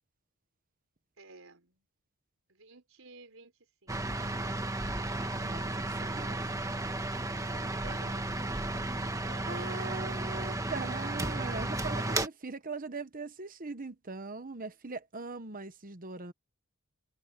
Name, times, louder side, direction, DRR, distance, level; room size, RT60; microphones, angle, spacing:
voice 1, 1.2-1.9 2.5-3.5 7.1-10.1, right 3 dB, 70° right, 4.4 m, -53 dB
sound 1, 3.9-12.3, right 2 dB, 15° right, 1.5 m, -34 dB
voice 2, 6.0-6.4 9.5-16.3, right 3 dB, 40° right, 1.1 m, -40 dB
head